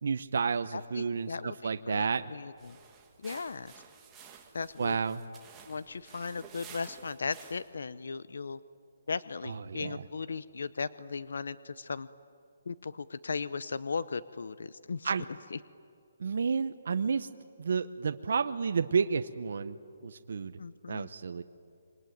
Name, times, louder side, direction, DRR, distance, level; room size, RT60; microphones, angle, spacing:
voice 1, 0.0-2.2 4.8-5.2 9.5-10.0 15.0-15.3 16.2-17.3 17.6-19.8 20.0-20.6 20.9-21.4, right 5 dB, 60° right, 9 dB, 0.8 m, -31 dB
voice 2, 0.7-2.8 3.2-3.7 4.5-5.0 5.7-8.6 9.1-12.1 12.7-15.1 15.5-15.6 20.6-21.1, left 5 dB, 75° left, 16 dB, 0.7 m, -37 dB
sound 1, 2.6-7.8, right 7 dB, 10° right, 1.6 m, -53 dB
26.5 x 24.0 x 9.3 m, 2.6 s
hypercardioid pair, 170°, 0 cm